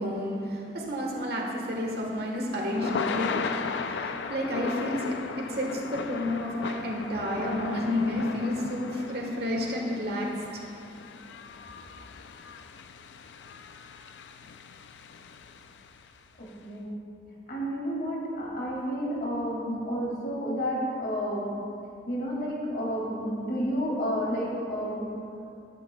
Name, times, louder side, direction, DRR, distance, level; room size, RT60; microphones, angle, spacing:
voice 1, 0.0-10.3, left 1 dB, 60° right, -1 dB, 1.4 m, -31 dB
Thunder / Rain, 1.8-16.1, left 5 dB, 85° left, 0.4 m, -37 dB
voice 2, 16.4-16.9 17.5-21.5 22.1-25.1, equal, 60° left, -4 dB, 2.3 m, -31 dB
11.5 x 9.9 x 2.3 m, 2.6 s
head